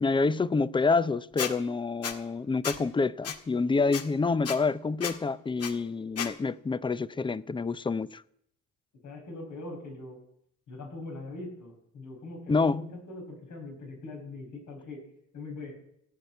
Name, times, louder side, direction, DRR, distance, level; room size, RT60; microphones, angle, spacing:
voice 1, 0.0-8.2 12.5-13.0, left 4 dB, 15° left, 0.5 m, -27 dB
Squeak, 1.4-1.5 2.0-2.1 2.6-2.8 3.2-3.4 3.9-4.0 4.4-4.6 5.0-5.1 5.6-5.7 6.2-6.3, left 7 dB, 55° left, 1.6 m, -32 dB
voice 2, 9.0-10.2 10.7-15.0 15.3-15.7, left 2 dB, 75° left, 6.0 m, -42 dB
16.0 x 7.9 x 8.3 m
cardioid pair, 90°, 30 cm